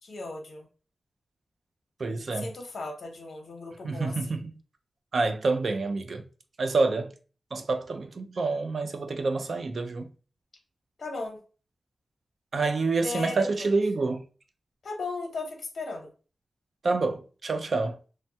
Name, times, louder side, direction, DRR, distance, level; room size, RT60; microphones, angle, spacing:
voice 1, 0.0-0.7 2.3-4.2 11.0-11.4 13.0-13.7 14.8-16.1, left 3 dB, 70° left, 0.8 m, -36 dB
voice 2, 2.0-2.5 3.8-4.5 5.1-6.3 6.6-7.1 7.5-10.1 12.5-14.2 16.8-18.0, right 3 dB, 60° right, 0.4 m, -27 dB
3.2 x 2.2 x 2.7 m
wide cardioid pair, 140°, 0 cm